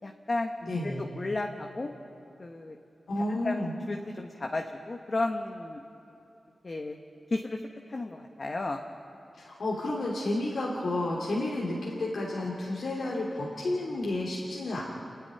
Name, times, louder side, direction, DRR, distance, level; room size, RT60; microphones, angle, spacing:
voice 1, 0.0-0.5 0.8-1.9 2.4-2.8 3.2-5.8 6.6-7.0 7.3-7.6 7.9-8.8, left 2 dB, 45° left, 3 dB, 1.2 m, -33 dB
voice 2, 0.7-1.0 3.1-3.7 9.4-14.8, left 2 dB, 75° left, -4 dB, 2.8 m, -31 dB
29.0 x 9.8 x 9.8 m, 2.9 s
cardioid pair, 70°, 0 cm